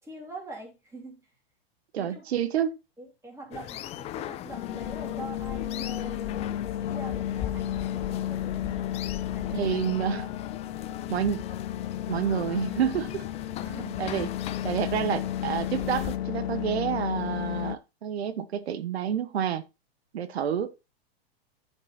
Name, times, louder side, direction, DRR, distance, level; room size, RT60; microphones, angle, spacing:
voice 1, 0.0-1.2 2.0-2.2 3.0-6.4 6.8-9.0 9.3-9.8 10.9-11.0 13.6-14.3, right 2 dB, 10° right, 3.1 m, -44 dB
voice 2, 1.9-2.8 9.5-10.4 11.1-11.5 12.1-13.3 14.0-14.3 14.6-19.6 20.1-20.7, right 8 dB, 85° right, 1.0 m, -29 dB
sound 1, 3.5-16.2, left 13 dB, 20° left, 0.4 m, -39 dB
sound 2, 4.5-17.8, left 12 dB, 80° left, 0.6 m, -33 dB
10.0 x 5.3 x 4.1 m
hypercardioid pair, 130°, 31 cm